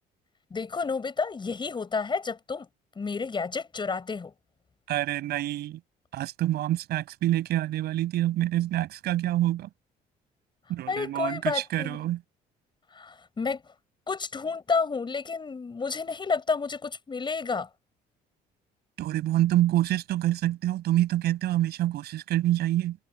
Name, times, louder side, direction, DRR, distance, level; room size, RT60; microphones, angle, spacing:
voice 1, 0.5-2.7 2.9-4.3 10.9-12.0 12.9-13.7 14.1-17.7, left 4 dB, 25° left, 6.8 m, -30 dB
voice 2, 4.9-5.8 6.1-9.7 10.7-12.2 19.0-23.0, right 14 dB, 75° right, 6.1 m, -26 dB
cardioid pair, 110°, 17 cm